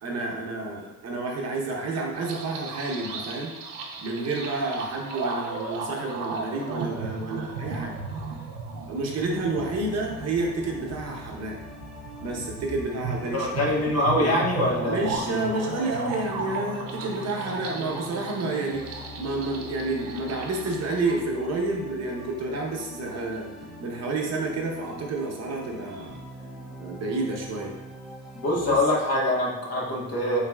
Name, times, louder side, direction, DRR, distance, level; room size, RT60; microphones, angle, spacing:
voice 1, 0.0-3.5 4.0-8.0 8.9-11.6 12.2-13.6 14.2-14.3 14.9-23.5 23.8-26.2 26.8-27.8 28.7-28.8, right 2 dB, 50° right, -1 dB, 0.9 m, -30 dB
sound 1, 2.1-21.2, right 4 dB, 90° right, 0.7 m, -36 dB
pad mixdown, 9.5-28.8, left 1 dB, ahead, 0.5 m, -43 dB
voice 2, 13.3-15.0 15.3-15.4 28.3-30.4, left 1 dB, 50° left, -3 dB, 1.1 m, -24 dB
4.0 x 4.0 x 2.3 m, 0.99 s
cardioid pair, 115°, 33 cm